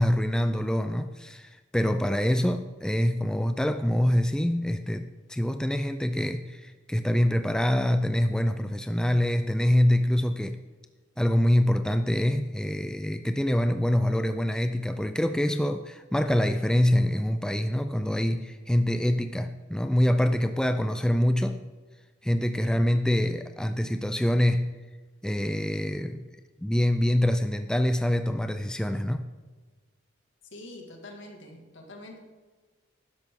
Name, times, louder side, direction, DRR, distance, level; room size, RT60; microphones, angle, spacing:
voice 1, 0.0-10.6 11.2-21.6 22.2-24.7 25.2-26.3 26.6-29.3, left 1 dB, 5° left, 8 dB, 0.3 m, -25 dB
voice 2, 30.5-32.2, left 1 dB, 75° left, 2 dB, 2.0 m, -45 dB
12.5 x 10.5 x 3.7 m, 1.3 s
head